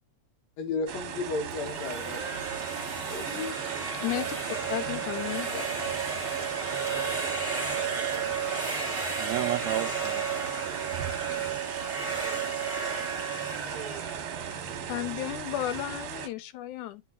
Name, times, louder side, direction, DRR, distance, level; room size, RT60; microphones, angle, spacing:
voice 1, 0.6-2.2 3.1-3.7 5.5-5.9, left 3 dB, 70° left, 2.1 m, -34 dB
sound 1, 0.9-16.3, right 8 dB, 65° right, 1.5 m, -37 dB
sound 2, 1.5-15.4, right 5 dB, 15° right, 1.6 m, -33 dB
voice 2, 4.0-5.5 14.9-17.0, left 14 dB, 90° left, 2.1 m, -33 dB
voice 3, 8.8-11.8 12.2-12.6, right 15 dB, 80° right, 1.7 m, -36 dB
11.5 x 4.0 x 2.3 m
omnidirectional pair, 3.3 m